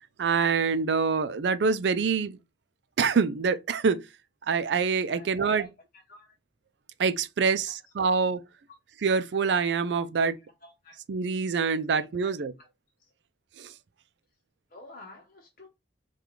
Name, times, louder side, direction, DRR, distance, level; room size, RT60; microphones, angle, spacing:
voice 1, 0.2-2.4 3.0-4.0 4.5-5.7 7.0-8.4 9.0-10.4 11.1-12.5 13.6-13.7, right 5 dB, 70° right, 0.4 m, -25 dB
voice 2, 5.1-5.7 6.1-6.4 10.2-10.3 10.6-11.0 11.9-12.4 13.0-13.1 14.7-15.7, left 2 dB, 50° left, 0.8 m, -51 dB
4.7 x 2.4 x 3.6 m
head